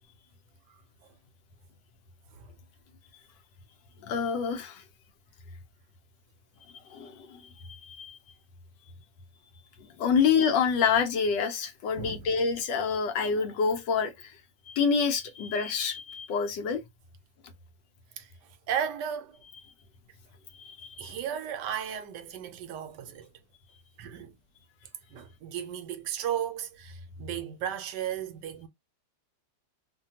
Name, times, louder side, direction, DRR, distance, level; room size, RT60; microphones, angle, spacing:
voice 1, 4.0-4.8 6.9-8.2 10.0-14.3 14.7-16.8 20.6-21.2, left 6 dB, 80° left, 1.3 m, -27 dB
voice 2, 12.0-12.3 18.2-18.3 18.7-19.4 21.0-23.3 24.0-24.4 25.1-28.7, right 9 dB, 75° right, 1.2 m, -35 dB
3.2 x 2.2 x 2.7 m
omnidirectional pair, 1.9 m